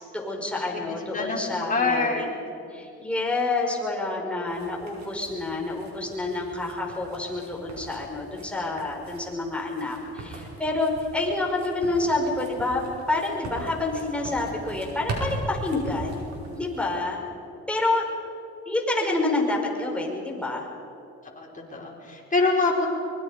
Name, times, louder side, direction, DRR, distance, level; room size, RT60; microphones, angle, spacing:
voice 1, 0.1-2.3 2.7-17.2 17.7-18.0 18.7-20.7, left 2 dB, 5° left, -2 dB, 5.5 m, -28 dB
voice 2, 1.7-2.2 21.2-22.9, left 3 dB, 25° left, -2 dB, 4.9 m, -25 dB
sound 1, 4.5-17.0, right 2 dB, 65° right, 5.5 m, -40 dB
24.0 x 22.0 x 5.2 m, 2.9 s
cardioid pair, 90°, 30 cm